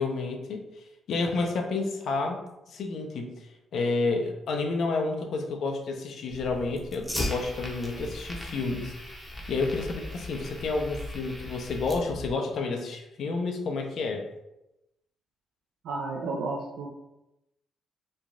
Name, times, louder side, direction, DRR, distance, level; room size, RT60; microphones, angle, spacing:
voice 1, 0.0-2.4 2.7-8.9 9.5-14.2, left 3 dB, 65° left, 3 dB, 0.4 m, -30 dB
Fire, 6.3-12.3, left 1 dB, 5° left, 0.6 m, -38 dB
voice 2, 15.8-16.9, right 3 dB, 80° right, -3 dB, 0.4 m, -32 dB
3.2 x 2.3 x 2.5 m, 0.92 s
cardioid pair, 90°, 0 cm